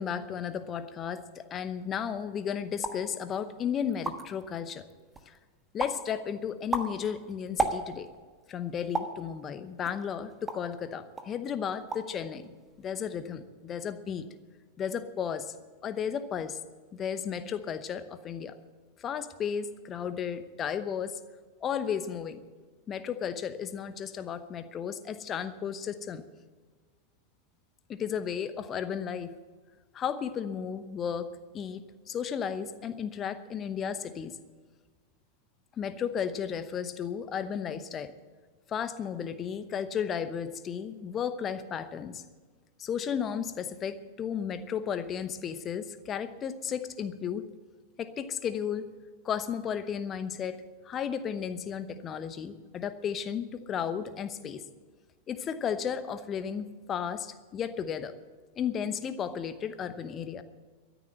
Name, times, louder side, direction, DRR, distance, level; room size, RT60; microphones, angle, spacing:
voice 1, 0.0-4.8 5.3-5.4 5.7-8.1 8.5-12.4 12.8-14.3 14.8-15.5 15.8-16.6 16.9-18.5 19.0-21.2 21.6-22.4 22.9-26.2 27.9-29.3 29.9-34.4 35.8-38.1 38.7-42.2 42.8-47.5 48.0-48.9 49.2-50.6 50.8-54.6 55.3-58.1 58.6-60.4, left 8 dB, 25° left, 12 dB, 0.9 m, -34 dB
sound 1, 2.8-3.1 3.6-3.7 3.9-4.4 4.9-5.4 5.8-6.1 6.5-8.2 8.9-9.2 9.8-10.8 11.2-11.4 11.7-12.2 12.4-12.9, right 3 dB, 15° right, 1.3 m, -33 dB
13.5 x 10.0 x 7.7 m, 1.4 s
figure-of-eight pair, 90°, 0 cm